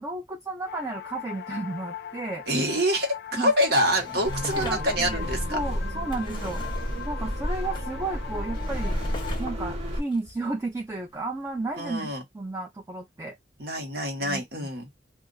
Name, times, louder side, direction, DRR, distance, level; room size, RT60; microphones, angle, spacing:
voice 1, 0.0-2.4 3.3-3.5 4.5-6.6 7.0-9.0 9.4-13.3 14.2-14.7, right 2 dB, 15° right, 0.4 m, -33 dB
sound 1, 0.7-9.3, left 9 dB, 65° left, 0.4 m, -40 dB
voice 2, 2.5-5.6 11.8-12.2 13.6-14.9, equal, 60° right, 1.2 m, -26 dB
Drawer open or close, 3.5-11.2 11.7-11.8, left 1 dB, 25° left, 0.7 m, -41 dB
sound 2, 4.2-10.0, equal, 35° right, 1.1 m, -31 dB
2.4 x 2.4 x 3.8 m
head